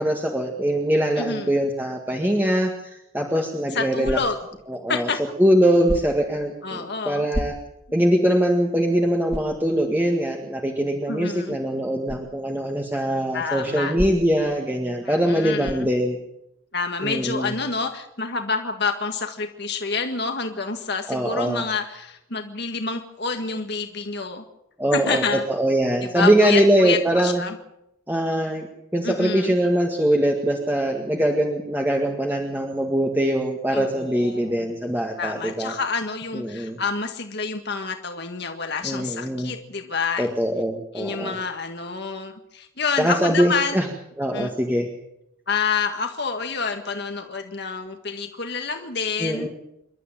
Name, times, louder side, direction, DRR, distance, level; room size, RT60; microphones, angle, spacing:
voice 1, 0.0-4.2 4.7-5.1 5.4-7.5 7.9-16.2 17.0-17.5 21.1-21.6 24.8-25.2 25.5-27.4 28.1-28.7 28.9-35.7 36.3-36.8 38.8-39.5 40.2-41.4 43.0-43.9 44.2-44.9 49.2-49.5, equal, 10° right, 1 dB, 1.8 m, -22 dB
voice 2, 1.2-1.5 3.7-4.4 4.9-5.2 6.6-7.3 11.1-11.5 13.3-13.9 15.0-15.9 16.7-24.4 24.9-25.4 26.1-27.5 29.0-29.5 33.7-34.6 35.2-40.3 40.9-43.8 44.3-44.5 45.5-49.5, left 4 dB, 50° left, 5 dB, 1.7 m, -28 dB
sound 1, 4.0-4.6 5.8-6.3 7.3-7.9 8.4-8.5 9.3-9.6 12.0-12.3 13.9-14.5 15.6-16.0, equal, 25° right, 3.2 m, -31 dB
27.5 x 12.5 x 9.2 m, 0.83 s
head